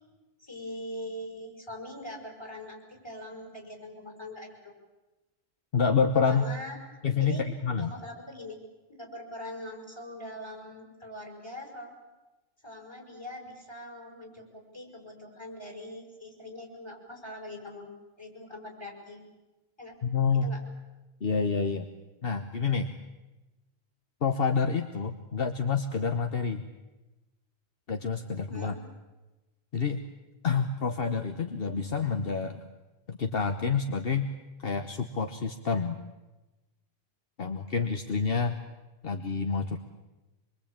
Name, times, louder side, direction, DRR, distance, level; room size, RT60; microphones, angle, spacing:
voice 1, 0.4-4.6 6.2-6.7 7.2-7.5 7.8-8.6 8.9-11.9 12.6-17.9 18.2-19.2 19.8-19.9 20.4-20.6 28.5-28.8, left 1 dB, 25° left, 2 dB, 6.2 m, -42 dB
voice 2, 5.7-6.5 7.0-7.9 20.0-20.5 21.2-21.8 22.2-22.9 24.2-26.6 27.9-28.8 29.7-30.0 30.4-32.6 33.1-34.3 34.6-36.0 37.4-38.6 39.0-39.8, left 5 dB, 65° left, 7 dB, 1.3 m, -28 dB
25.0 x 23.5 x 8.8 m, 1.1 s
omnidirectional pair, 1.1 m